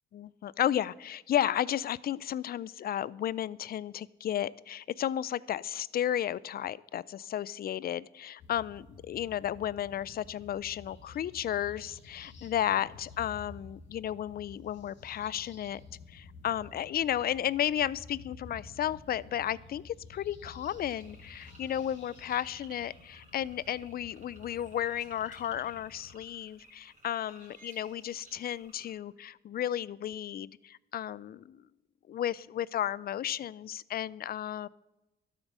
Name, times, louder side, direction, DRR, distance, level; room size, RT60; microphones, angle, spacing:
voice 1, 0.1-15.8 16.1-31.6 32.1-34.7, left 11 dB, 50° left, 21 dB, 0.4 m, -33 dB
sound 1, 8.4-26.1, left 4 dB, 65° left, 2.5 m, -52 dB
sound 2, 20.6-29.0, right 2 dB, 40° right, 3.5 m, -57 dB
12.5 x 8.2 x 6.1 m, 0.99 s
cardioid pair, 90°, 20 cm